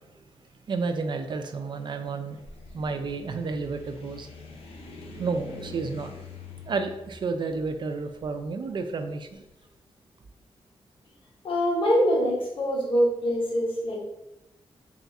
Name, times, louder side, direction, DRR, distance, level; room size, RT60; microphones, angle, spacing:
voice 1, 0.7-2.4 2.7-4.3 5.2-6.1 6.7-9.4, right 4 dB, 50° right, 6 dB, 0.4 m, -31 dB
sound 1, 2.3-9.5, left 3 dB, 75° left, 0.7 m, -45 dB
voice 2, 11.4-14.1, equal, 60° left, -3 dB, 1.1 m, -24 dB
3.4 x 2.5 x 4.1 m, 0.93 s
wide cardioid pair, 165°, 10 cm